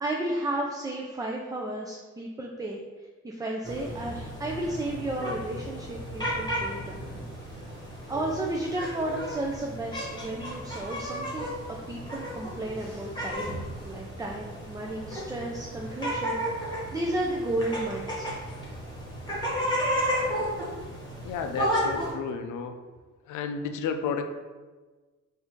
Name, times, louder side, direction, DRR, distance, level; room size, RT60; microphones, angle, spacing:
voice 1, 0.0-7.2 8.1-18.3, right 1 dB, 10° right, 0 dB, 0.4 m, -33 dB
sound 1, 3.6-22.1, equal, 15° left, 1.5 m, -33 dB
voice 2, 21.2-22.8 23.3-24.2, left 5 dB, 80° left, 7 dB, 0.5 m, -32 dB
4.0 x 2.7 x 4.5 m, 1.3 s
cardioid pair, 90°, 30 cm